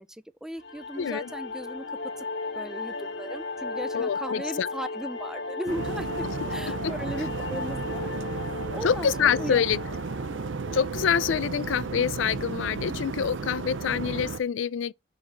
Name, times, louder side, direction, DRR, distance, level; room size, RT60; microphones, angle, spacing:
voice 1, 0.0-1.8 2.2-2.3 2.6-8.4 8.7-9.6 12.9-13.0, equal, 5° right, 0.4 m, -37 dB
sound 1, 0.6-11.6, left 3 dB, 70° left, 1.7 m, -36 dB
voice 2, 1.0-1.3 3.9-4.7 6.8-6.9 8.8-9.8 10.7-14.9, left 7 dB, 90° left, 0.4 m, -26 dB
sound 2, 5.7-14.4, right 4 dB, 90° right, 0.6 m, -34 dB
7.0 x 4.0 x 6.5 m
head